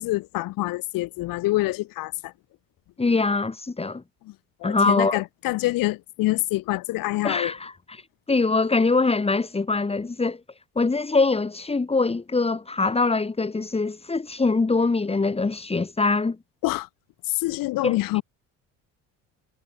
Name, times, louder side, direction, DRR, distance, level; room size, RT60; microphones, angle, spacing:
voice 1, 0.0-2.3 4.6-7.5 16.6-16.9 17.3-18.2, left 19 dB, 85° left, 6.1 m, -26 dB
voice 2, 3.0-4.0 4.6-5.2 7.2-8.0 8.3-10.4 10.8-16.4 17.8-18.0, left 3 dB, 20° left, 4.3 m, -23 dB
cardioid pair, 120°, 33 cm